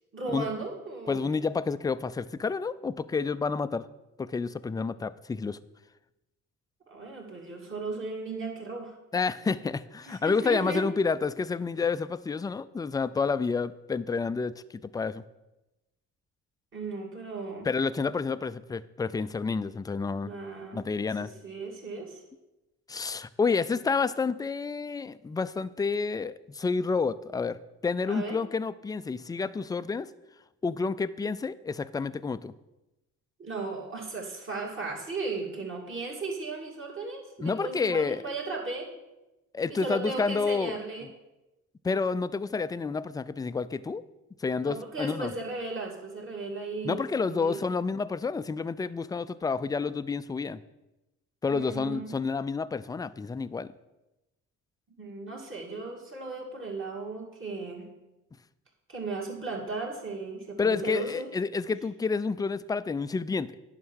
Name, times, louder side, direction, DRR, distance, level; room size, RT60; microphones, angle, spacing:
voice 1, 0.1-1.2 6.9-8.9 10.1-10.8 16.7-17.7 20.2-20.8 21.2-22.2 28.1-28.4 33.4-38.9 39.7-41.1 44.6-47.6 51.5-52.1 55.0-57.9 58.9-61.3, right 3 dB, 40° right, -1 dB, 2.7 m, -36 dB
voice 2, 1.1-3.9 4.2-5.6 9.1-14.5 14.9-15.2 17.6-20.3 20.7-21.3 22.9-30.1 30.6-32.5 37.4-38.2 39.5-40.8 41.8-44.0 44.4-45.3 46.8-50.6 51.4-53.7 60.6-63.5, left 4 dB, 15° left, 14 dB, 0.3 m, -29 dB
9.6 x 5.7 x 6.3 m, 0.99 s
cardioid pair, 90°, 30 cm